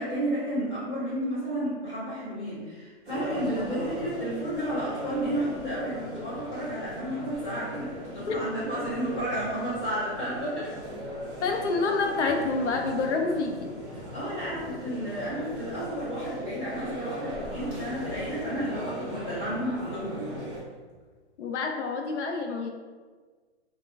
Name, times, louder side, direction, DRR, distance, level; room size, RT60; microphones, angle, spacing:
voice 1, 0.0-10.7 14.1-20.4, right 1 dB, 5° left, -18 dB, 0.3 m, -32 dB
sound 1, 3.0-20.6, equal, 20° right, 0.9 m, -39 dB
voice 2, 11.4-13.7 21.4-22.7, left 3 dB, 80° left, 3 dB, 0.6 m, -27 dB
sound 2, 11.6-11.9 12.2-20.4 20.7-21.2, left 1 dB, 30° left, 0.7 m, -50 dB
2.3 x 2.1 x 3.3 m, 1.4 s
hypercardioid pair, 160°, 35 cm